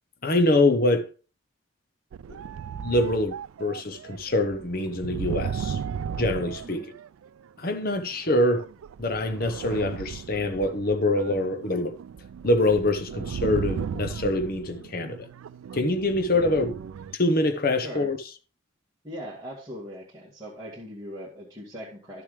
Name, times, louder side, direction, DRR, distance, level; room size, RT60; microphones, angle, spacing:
voice 1, 0.2-1.1 2.3-2.4 2.8-5.8 6.1-6.9 7.6-8.7 9.0-11.9 12.4-15.3 15.7-16.7 17.1-18.2, left 1 dB, 45° left, 0.9 m, -24 dB
sound 1, 2.1-7.5 8.2-17.1, right 7 dB, 85° right, 0.3 m, -36 dB
voice 2, 16.3-16.7 17.8-18.1 19.0-22.2, equal, 20° right, 2.1 m, -40 dB
11.5 x 6.7 x 3.2 m
head